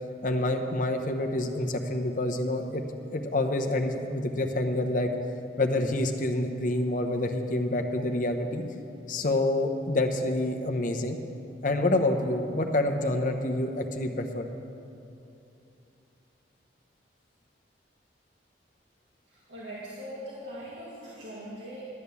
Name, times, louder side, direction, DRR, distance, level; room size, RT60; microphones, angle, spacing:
voice 1, 0.2-2.8 3.1-5.1 5.6-8.6 9.1-11.2 11.6-14.5, left 1 dB, 45° left, 4 dB, 0.8 m, -27 dB
voice 2, 19.3-21.8, equal, 90° right, -7 dB, 2.0 m, -41 dB
12.0 x 8.7 x 7.0 m, 2.8 s
head